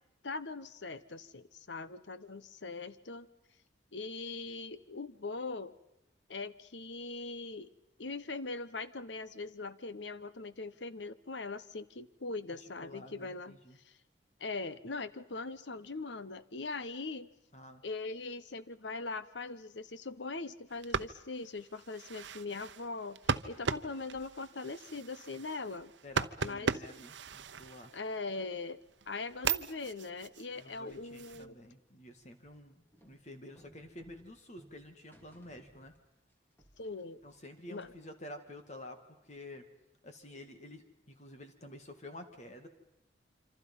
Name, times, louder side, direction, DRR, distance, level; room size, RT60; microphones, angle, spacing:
voice 1, 0.2-3.3 3.9-5.8 6.3-7.7 8.0-13.6 13.8-13.9 14.4-17.3 17.8-23.2 23.4-25.9 26.4-26.8 27.9-28.8 29.1-31.6 36.8-37.2 37.7-37.9, left 3 dB, 75° left, 15 dB, 1.0 m, -41 dB
voice 2, 12.8-13.8 17.5-17.8 26.0-27.9 30.6-32.7 33.1-35.9 37.2-39.7 40.0-42.7, left 1 dB, 40° left, 6 dB, 2.2 m, -50 dB
sound 1, 20.7-28.3 28.8-31.5, right 5 dB, 80° right, 0.8 m, -38 dB
sound 2, 30.9-36.3 36.6-38.1, right 1 dB, 10° left, 2.6 m, -63 dB
27.0 x 25.5 x 5.6 m, 0.88 s
head